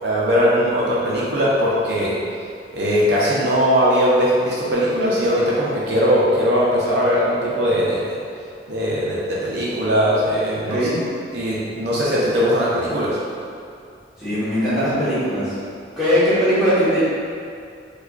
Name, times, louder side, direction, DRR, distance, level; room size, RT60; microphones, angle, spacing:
voice 1, 0.0-2.1 2.7-8.2 8.7-10.8 11.3-13.2, equal, 65° right, -6 dB, 0.5 m, -19 dB
voice 2, 10.5-10.9 14.2-15.5 16.0-17.0, equal, ahead, -15 dB, 1.1 m, -20 dB
4.6 x 2.3 x 2.3 m, 2.4 s
head